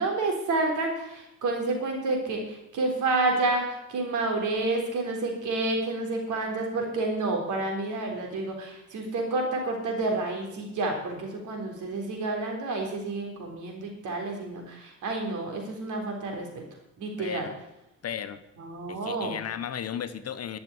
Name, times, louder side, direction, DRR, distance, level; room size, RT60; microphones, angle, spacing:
voice 1, 0.0-16.6 17.0-17.5 18.6-19.3, right 2 dB, 80° right, 2 dB, 3.9 m, -29 dB
voice 2, 17.2-17.5 18.0-18.4 18.9-20.6, left 9 dB, 55° left, 11 dB, 1.1 m, -35 dB
12.5 x 6.8 x 9.7 m, 0.89 s
cardioid pair, 90°, 30 cm